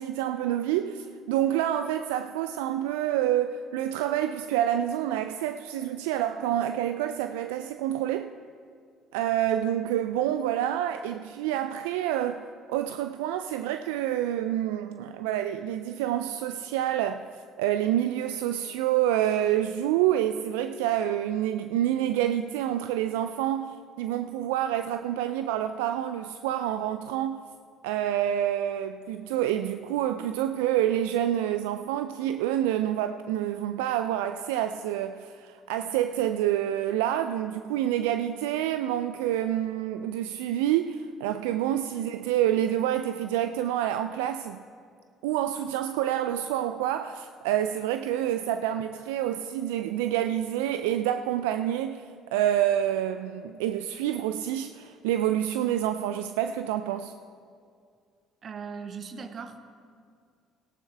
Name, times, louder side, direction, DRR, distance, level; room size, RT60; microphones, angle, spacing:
voice 1, 0.0-8.3 9.1-17.3 17.6-27.5 27.8-44.6 45.2-57.1, right 11 dB, 80° right, 0.3 m, -28 dB
voice 2, 58.4-59.6, right 5 dB, 50° right, 1.1 m, -39 dB
18.0 x 11.0 x 3.3 m
hypercardioid pair, 55°, 0 cm